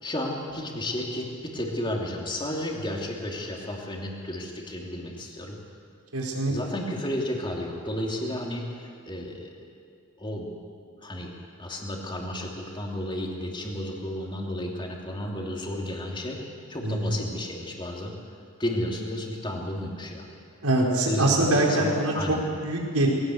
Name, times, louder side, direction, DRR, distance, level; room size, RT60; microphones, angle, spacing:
voice 1, 0.0-5.6 6.5-9.5 10.2-10.5 11.0-11.3 11.6-16.4 16.7-18.1 18.6-20.3 21.0-22.4, left 1 dB, 20° left, 0 dB, 2.8 m, -32 dB
voice 2, 6.1-6.5 16.8-17.1 20.6-23.1, right 2 dB, 90° right, -2 dB, 4.7 m, -24 dB
21.0 x 17.0 x 8.0 m, 2.3 s
head